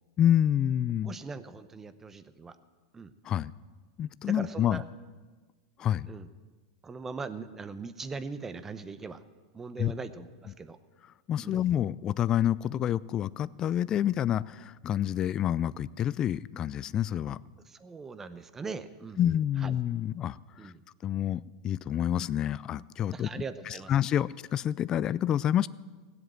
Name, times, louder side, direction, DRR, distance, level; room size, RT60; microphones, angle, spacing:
voice 1, 0.2-1.1 3.2-3.5 4.0-4.8 5.8-6.1 9.8-9.9 11.3-17.4 19.2-20.7 21.0-23.3 23.9-25.7, left 10 dB, 30° left, 19 dB, 0.3 m, -28 dB
voice 2, 1.0-2.6 2.9-3.1 4.2-4.8 6.1-6.3 6.8-9.2 9.5-10.8 11.4-11.7 17.7-19.2 19.6-19.7 20.6-20.8 23.1-23.9, right 4 dB, 15° right, 13 dB, 0.8 m, -40 dB
17.5 x 8.0 x 7.7 m, 1.4 s
supercardioid pair, 125°, 2 cm